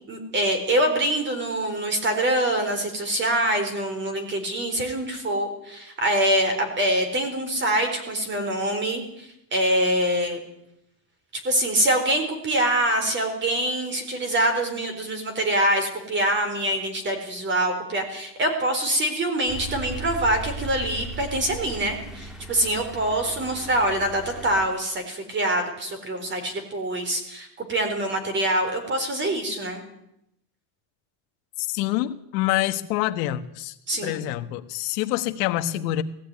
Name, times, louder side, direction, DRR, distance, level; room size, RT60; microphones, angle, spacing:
voice 1, 0.1-10.4 11.4-29.8 33.9-34.2, right 1 dB, 20° right, 7 dB, 4.1 m, -25 dB
sound 1, 19.5-24.7, right 2 dB, ahead, 1.6 m, -37 dB
voice 2, 31.6-33.7 34.0-36.0, left 14 dB, 75° left, 8 dB, 1.5 m, -26 dB
19.0 x 15.0 x 9.7 m, 0.81 s
cardioid pair, 175°, 50 cm